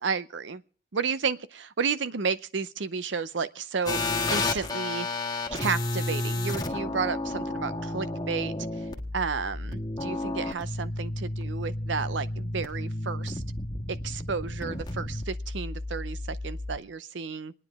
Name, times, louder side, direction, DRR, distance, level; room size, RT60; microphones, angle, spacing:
voice 1, 0.0-0.6 0.9-5.1 5.5-8.5 9.1-13.4 13.9-17.5, right 5 dB, 75° right, 0.7 m, -32 dB
sound 1, 3.9-16.8, left 2 dB, 20° left, 1.4 m, -32 dB
28.0 x 9.9 x 3.5 m
head